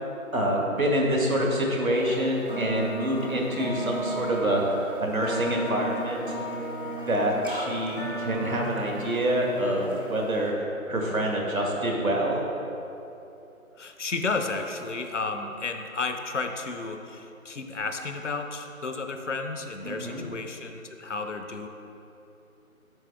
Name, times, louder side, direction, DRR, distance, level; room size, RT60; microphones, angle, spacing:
voice 1, 0.3-6.4 7.1-10.5 10.9-12.5 19.8-20.2, right 1 dB, 75° right, -1 dB, 1.8 m, -26 dB
sound 1, 1.9-10.5, right 1 dB, 35° right, 0.8 m, -35 dB
voice 2, 13.8-21.7, left 3 dB, 55° left, 6 dB, 0.6 m, -32 dB
8.9 x 6.0 x 3.4 m, 2.9 s
figure-of-eight pair, 175°, 43 cm